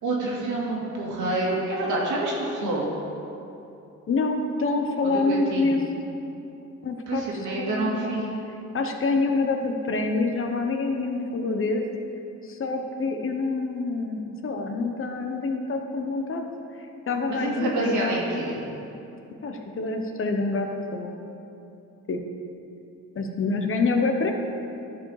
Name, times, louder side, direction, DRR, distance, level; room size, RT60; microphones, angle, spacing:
voice 1, 0.0-2.9 5.0-5.8 7.1-8.3 17.3-18.6, right 2 dB, 75° right, -4 dB, 2.3 m, -28 dB
voice 2, 4.1-5.8 6.8-7.2 7.6-8.0 8.7-11.8 12.5-16.4 17.1-18.5 19.4-21.1 22.1-22.2 23.2-24.3, left 3 dB, 45° left, 4 dB, 1.0 m, -26 dB
12.5 x 4.8 x 4.8 m, 2.8 s
cardioid pair, 90°, 30 cm